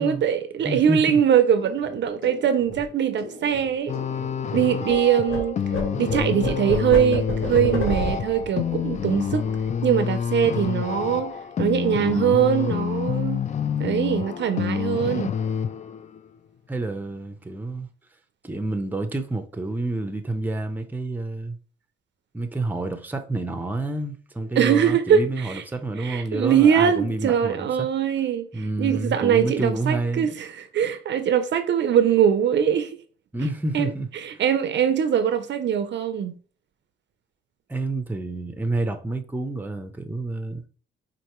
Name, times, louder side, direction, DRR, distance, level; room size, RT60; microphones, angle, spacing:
voice 1, 0.0-4.0 4.5-5.6 6.0-9.5 9.8-13.4 13.8-15.3 24.6-25.6 26.0-33.0 33.7-36.4, right 8 dB, 60° right, 0.5 m, -22 dB
voice 2, 0.6-1.2 5.9-6.0 16.7-17.9 18.4-21.6 22.3-27.9 28.5-30.4 33.3-34.1 37.7-40.6, right 2 dB, 10° right, 0.6 m, -29 dB
sound 1, 1.6-5.0 5.2-10.2 10.5-10.8 11.0-11.6, left 1 dB, 75° left, 1.6 m, -32 dB
sound 2, 3.9-16.3, left 7 dB, 35° left, 0.3 m, -28 dB
4.6 x 2.6 x 3.0 m
cardioid pair, 85°, 21 cm